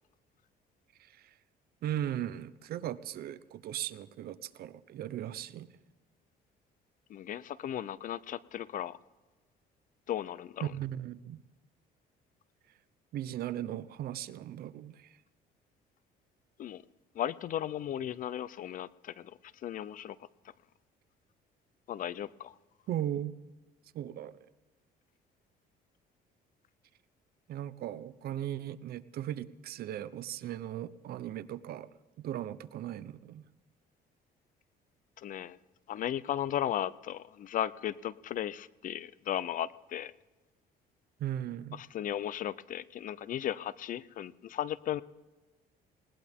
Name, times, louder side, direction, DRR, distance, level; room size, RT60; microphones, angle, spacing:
voice 1, 1.0-1.3 1.8-5.7 10.6-11.4 13.1-15.2 22.9-23.4 23.9-24.3 27.5-31.9 32.2-33.4 41.2-41.8, right 11 dB, 65° right, 15 dB, 0.8 m, -37 dB
voice 2, 7.1-9.0 10.1-10.7 16.6-16.8 17.2-19.3 19.6-20.2 21.9-22.5 35.2-35.6 35.9-40.1 41.7-45.0, left 11 dB, 50° left, 19 dB, 0.6 m, -36 dB
20.0 x 19.0 x 3.6 m, 1.2 s
cardioid pair, 110°, 17 cm